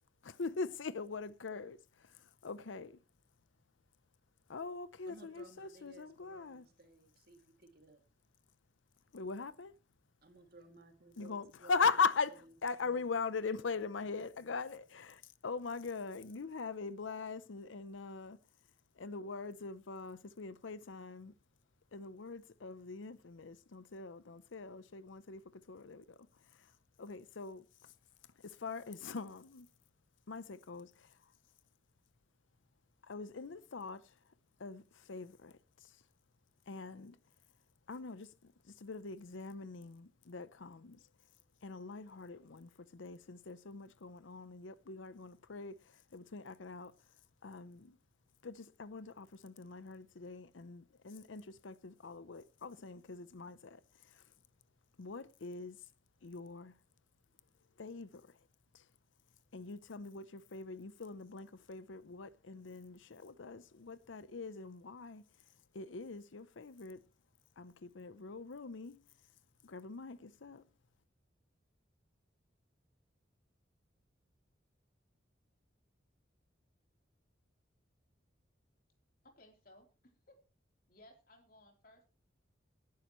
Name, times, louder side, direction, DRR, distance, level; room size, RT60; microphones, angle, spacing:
voice 1, 0.2-3.0 4.5-6.7 9.1-9.7 11.2-18.4 18.9-21.3 21.9-27.9 28.4-29.7 30.3-31.3 33.0-34.3 34.6-36.0 36.7-37.2 37.9-41.1 41.6-48.0 48.4-54.3 55.0-55.9 56.2-56.7 57.8-58.4 58.7-58.9 59.5-67.1 67.6-69.0 69.6-70.7, left 4 dB, 80° left, 0.7 m, -42 dB
voice 2, 5.1-8.0 10.2-11.9 12.3-12.4 12.9-13.0 13.6-13.7, right 2 dB, 50° right, 2.5 m, -58 dB
voice 3, 79.2-80.4 80.9-82.1, left 1 dB, 50° left, 3.6 m, -61 dB
18.0 x 11.5 x 3.1 m
head